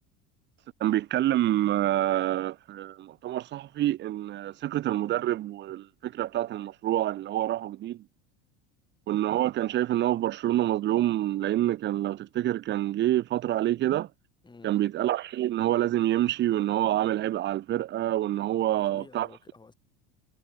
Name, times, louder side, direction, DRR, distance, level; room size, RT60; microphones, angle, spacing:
voice 1, 0.8-8.0 9.1-14.1 14.6-19.3, right 13 dB, 35° right, 0.7 m, -27 dB
voice 2, 18.6-19.7, left 3 dB, 15° left, 6.9 m, -51 dB
supercardioid pair, 120°, 30 cm